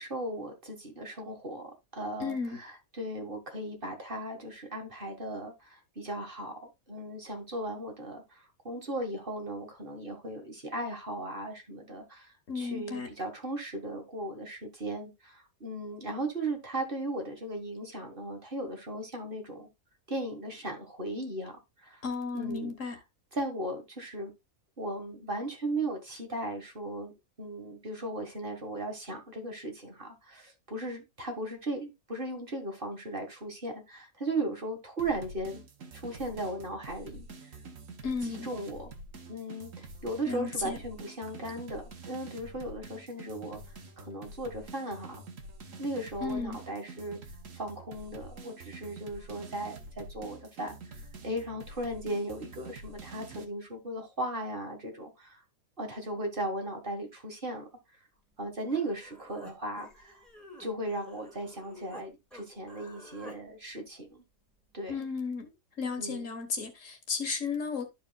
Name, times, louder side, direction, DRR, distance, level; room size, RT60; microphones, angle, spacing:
voice 1, 0.0-19.7 20.1-22.0 22.3-23.0 23.3-24.3 24.8-27.1 27.4-35.6 35.9-37.3 38.2-38.9 39.3-43.6 44.0-45.2 45.8-47.2 47.5-55.4 55.8-57.7 58.4-60.2 60.6-64.2 64.7-64.9 66.0-66.3, right 1 dB, 40° right, 1.7 m, -37 dB
voice 2, 2.2-2.6 12.5-13.1 22.0-23.0 38.0-38.5 40.3-40.8 46.2-46.6 64.9-65.5 65.8-67.9, left 4 dB, 60° left, 1.7 m, -34 dB
sound 1, 35.0-53.4, right 3 dB, 65° right, 1.5 m, -47 dB
Human voice, 58.3-58.4 58.7-62.1 62.3-63.4, left 1 dB, ahead, 2.0 m, -51 dB
13.0 x 4.7 x 2.3 m
omnidirectional pair, 1.5 m